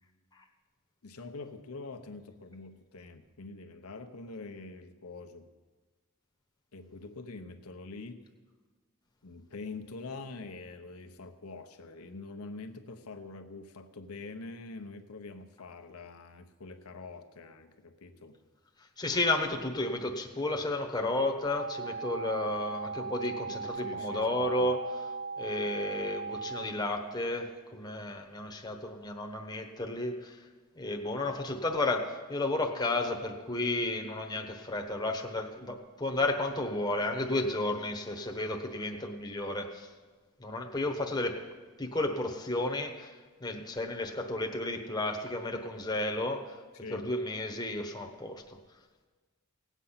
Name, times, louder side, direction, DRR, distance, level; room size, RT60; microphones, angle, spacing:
voice 1, 1.0-5.5 6.7-8.3 9.2-18.4 23.4-24.7 46.8-47.1, left 3 dB, 85° left, 6 dB, 0.9 m, -45 dB
voice 2, 19.0-25.1 25.4-30.4 30.8-39.9 40.4-41.4 41.8-43.1 43.4-46.6 46.9-48.6, left 2 dB, 20° left, 3 dB, 1.0 m, -32 dB
sound 1, 21.5-26.7, right 4 dB, 45° left, 0.7 m, -38 dB
17.0 x 8.2 x 5.8 m, 1.4 s
head